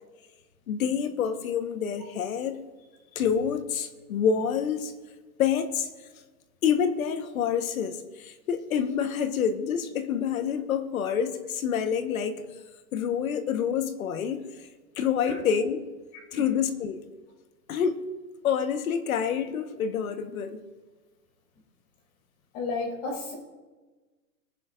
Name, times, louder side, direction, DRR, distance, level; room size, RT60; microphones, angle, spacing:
voice 1, 0.7-2.6 3.1-4.9 5.4-5.9 6.6-12.4 12.9-14.4 15.0-15.9 16.3-17.0 17.7-18.0 18.4-20.6, left 7 dB, 60° left, 1.3 m, -27 dB
voice 2, 16.1-16.4 22.5-23.3, left 3 dB, 30° left, 3.5 m, -33 dB
24.0 x 10.5 x 2.6 m
hypercardioid pair, 165°, 48 cm